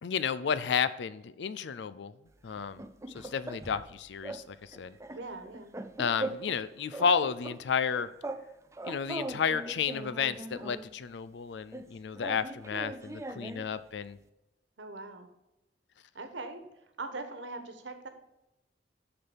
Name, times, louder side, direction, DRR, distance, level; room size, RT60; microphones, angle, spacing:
voice 1, 0.0-2.1 2.4-2.8 3.1-5.0 6.0-8.1 8.8-14.2, left 6 dB, 70° left, 15 dB, 0.4 m, -32 dB
sound 1, 2.5-3.9 4.2-4.5 4.7-6.6 6.9-8.5 8.7-10.9 11.7-13.7, right 2 dB, 15° right, 0.5 m, -40 dB
voice 2, 5.1-5.7 14.8-15.3 16.1-16.6 17.0-18.1, right 3 dB, 80° right, 8 dB, 1.2 m, -41 dB
6.6 x 6.0 x 7.1 m, 0.94 s
head